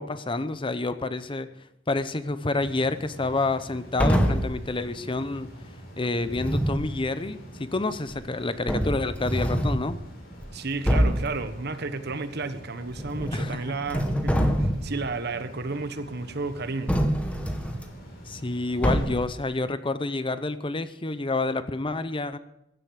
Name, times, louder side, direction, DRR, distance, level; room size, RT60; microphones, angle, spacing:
voice 1, 0.0-1.5 1.9-5.5 6.0-10.0 13.3-13.7 18.3-22.4, left 2 dB, 25° left, 12 dB, 0.8 m, -28 dB
sound 1, 2.5-19.2, equal, 50° left, 5.4 m, -45 dB
sound 2, 4.0-4.6 6.2-6.9 8.1-8.2 8.7-9.9 10.4-10.5 10.9-11.3 12.9-13.6 13.9-15.0 16.9-17.8 18.8-19.4, equal, 5° left, 1.8 m, -25 dB
voice 2, 10.5-16.9, right 3 dB, 55° right, 10 dB, 1.4 m, -32 dB
16.5 x 11.5 x 6.5 m, 0.81 s
head